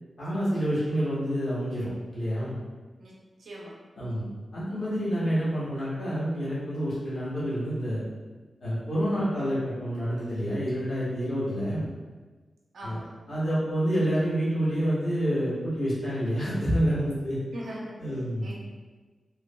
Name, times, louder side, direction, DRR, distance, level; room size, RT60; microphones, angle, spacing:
voice 1, 0.2-2.5 4.0-8.0 8.6-11.9 12.8-13.0 13.3-17.4 18.0-18.5, equal, 65° left, -11 dB, 1.1 m, -28 dB
voice 2, 3.4-3.8 12.7-13.1 17.5-18.0 18.4-18.6, right 1 dB, 85° right, -4 dB, 0.6 m, -39 dB
3.2 x 2.0 x 2.2 m, 1.3 s
cardioid pair, 55°, 0 cm